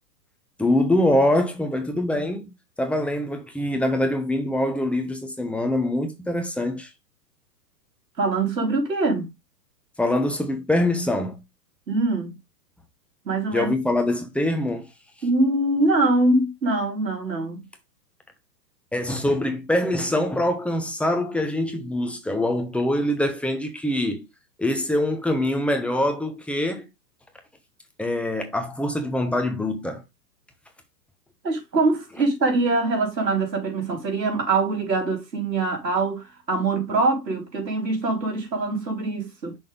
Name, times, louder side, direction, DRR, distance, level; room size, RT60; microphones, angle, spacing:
voice 1, 0.6-2.5 2.8-6.9 10.0-11.4 13.5-14.9 18.9-24.3 24.6-26.9 28.0-30.0, left 1 dB, 5° left, 0.8 m, -24 dB
voice 2, 8.2-9.3 11.9-12.4 13.3-13.7 15.2-17.6 31.4-39.6, right 2 dB, 90° right, 3.5 m, -23 dB
6.2 x 3.5 x 5.2 m
hypercardioid pair, 120°, 49 cm